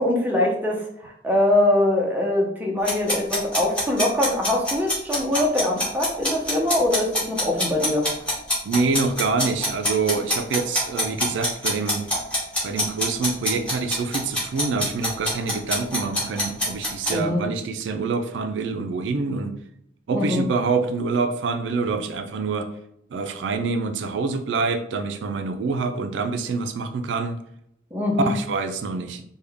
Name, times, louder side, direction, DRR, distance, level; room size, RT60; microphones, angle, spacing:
voice 1, 0.0-8.1 17.1-17.4 20.1-20.4 27.9-28.3, left 1 dB, 10° right, -1 dB, 0.6 m, -23 dB
sound 1, 2.9-17.1, left 1 dB, 5° left, 1.3 m, -24 dB
voice 2, 8.6-12.1 12.6-19.5 20.1-22.7 23.1-27.4 28.2-29.2, right 4 dB, 85° right, 7 dB, 0.4 m, -26 dB
3.5 x 2.2 x 3.4 m, 0.76 s
head